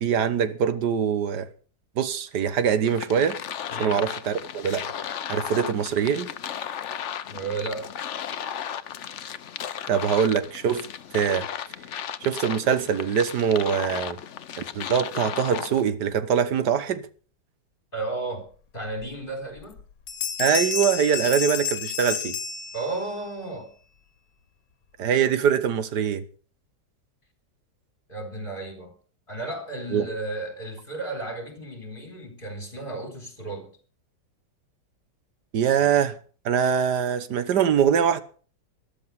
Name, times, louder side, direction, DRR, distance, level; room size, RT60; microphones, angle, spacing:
voice 1, 0.0-1.5 2.0-3.4 3.8-4.9 5.3-6.3 9.9-10.9 11.1-11.5 12.2-14.2 14.8-17.1 20.4-22.4 25.0-26.2 29.9-30.1 35.5-36.2 36.5-38.2, right 8 dB, 70° right, 1.7 m, -23 dB
sound 1, 2.8-15.8, left 9 dB, 55° left, 0.9 m, -35 dB
voice 2, 7.3-7.9 17.9-19.8 22.7-23.7 28.1-28.9 29.3-33.7, right 2 dB, 30° left, 4.3 m, -33 dB
Bell, 19.0-19.1 19.6-19.8 20.1-23.2, left 7 dB, 85° left, 1.8 m, -30 dB
13.5 x 12.0 x 5.9 m
omnidirectional pair, 1.9 m